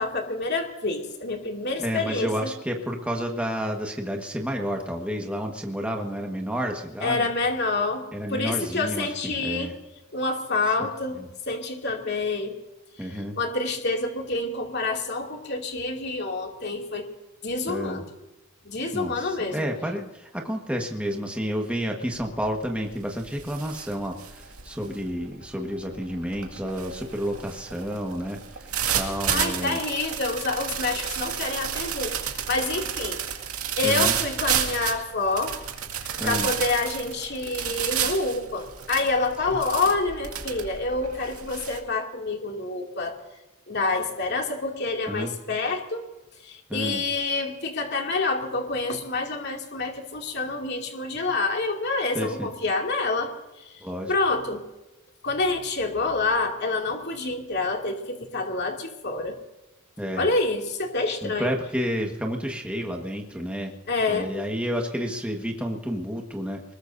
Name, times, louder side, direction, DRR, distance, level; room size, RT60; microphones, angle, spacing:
voice 1, 0.0-2.5 7.0-9.7 10.1-12.6 13.0-17.1 17.4-18.0 18.6-19.7 29.3-33.2 33.8-35.5 36.2-43.2 43.7-46.1 46.4-53.3 53.6-53.7 54.1-54.6 55.2-59.4 60.2-61.5 63.9-64.3, left 3 dB, 50° left, 1 dB, 2.5 m, -27 dB
voice 2, 1.8-7.3 8.1-9.7 10.8-10.9 11.1-11.3 13.0-13.4 17.7-18.0 18.9-29.8 33.8-34.2 36.2-36.5 39.5-39.6 45.1-45.3 46.7-47.0 52.1-52.5 53.8-54.1 60.0-60.3 61.2-63.7 64.1-66.7, equal, 5° right, 1 dB, 1.5 m, -30 dB
sound 1, 22.2-22.5 22.9-41.8, right 9 dB, 80° right, 2.2 m, -31 dB
23.5 x 21.0 x 2.7 m, 1.0 s
head